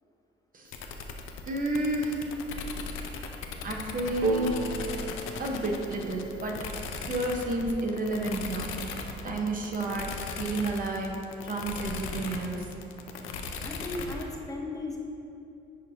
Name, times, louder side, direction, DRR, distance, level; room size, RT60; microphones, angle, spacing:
sound 1, 0.7-14.2, left 5 dB, 85° left, 0.5 m, -38 dB
voice 1, 1.5-2.3 3.6-4.6 5.4-6.6 7.1-8.7 9.2-12.7, right 2 dB, 45° right, 0 dB, 0.9 m, -31 dB
sound 2, 4.2-7.9, right 3 dB, 70° right, 0.8 m, -35 dB
voice 2, 13.6-15.0, left 2 dB, 15° left, -1 dB, 0.8 m, -36 dB
10.5 x 4.2 x 2.8 m, 2.7 s
cardioid pair, 90°, 20 cm